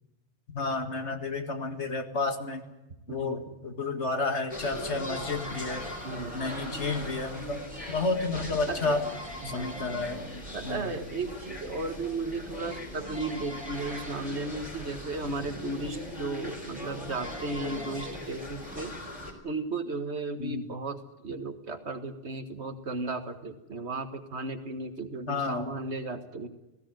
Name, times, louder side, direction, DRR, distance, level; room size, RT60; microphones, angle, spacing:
voice 1, 0.5-2.6 3.1-5.8 6.3-7.6 7.9-9.0 9.4-10.2 10.6-10.9 20.4-20.7 25.3-25.7, left 3 dB, 85° left, 6 dB, 2.4 m, -31 dB
voice 2, 3.1-3.6 6.0-6.5 8.7-9.0 9.4-10.0 10.5-18.9 19.4-26.5, right 3 dB, 75° right, 8 dB, 2.0 m, -35 dB
sound 1, 4.5-19.3, left 1 dB, 30° left, 4.0 m, -39 dB
19.0 x 16.0 x 9.2 m, 0.99 s
omnidirectional pair, 1.1 m